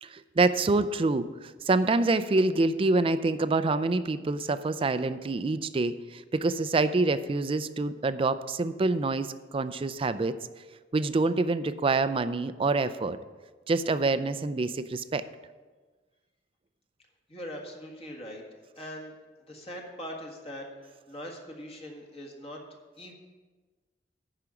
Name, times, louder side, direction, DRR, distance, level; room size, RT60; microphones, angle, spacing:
voice 1, 0.0-10.4 10.9-13.2 13.7-15.3, right 3 dB, 30° right, 13 dB, 0.4 m, -26 dB
voice 2, 17.3-18.4 18.8-19.1 19.5-22.6 23.0-23.1, equal, 35° left, 0 dB, 1.7 m, -41 dB
10.5 x 5.0 x 6.9 m, 1.3 s
head